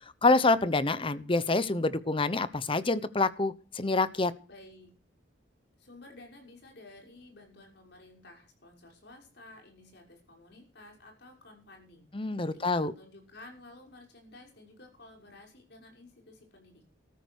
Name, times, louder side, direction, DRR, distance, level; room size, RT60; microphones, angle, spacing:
voice 1, 0.2-4.3 12.1-12.9, left 3 dB, 25° left, 15 dB, 0.8 m, -26 dB
voice 2, 4.5-4.9 5.8-16.9, left 2 dB, 60° left, 1 dB, 6.2 m, -53 dB
14.0 x 13.0 x 6.4 m, 0.38 s
head